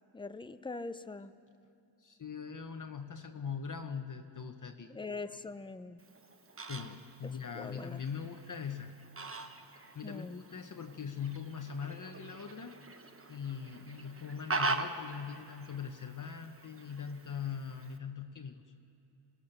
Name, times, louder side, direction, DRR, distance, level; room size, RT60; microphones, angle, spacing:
voice 1, 0.1-1.3 4.9-6.0 7.2-8.0 10.0-10.4, left 3 dB, 10° left, 11 dB, 0.6 m, -43 dB
voice 2, 2.0-4.9 6.6-9.0 9.7-12.8 13.3-18.7, left 6 dB, 40° left, 6 dB, 0.9 m, -41 dB
Fowl, 6.0-18.0, right 3 dB, 30° right, 1.0 m, -42 dB
26.0 x 18.0 x 6.7 m, 2.7 s
wide cardioid pair, 125°, 47 cm